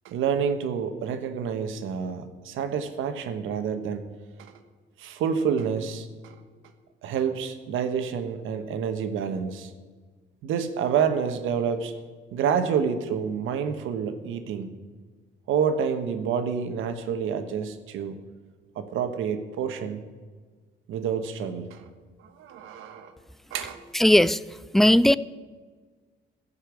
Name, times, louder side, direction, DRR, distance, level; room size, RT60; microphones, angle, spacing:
voice 1, 0.0-4.0 4.4-4.5 5.0-6.4 7.0-9.7 10.4-11.9 12.3-14.7 15.5-18.1 18.7-20.1 20.9-21.8 22.2-23.1 23.5-23.8, right 7 dB, 90° right, 8 dB, 1.2 m, -28 dB
voice 2, 23.9-24.4 24.7-25.2, left 1 dB, ahead, 18 dB, 0.3 m, -17 dB
15.0 x 5.6 x 8.3 m, 1.5 s
cardioid pair, 90°, 20 cm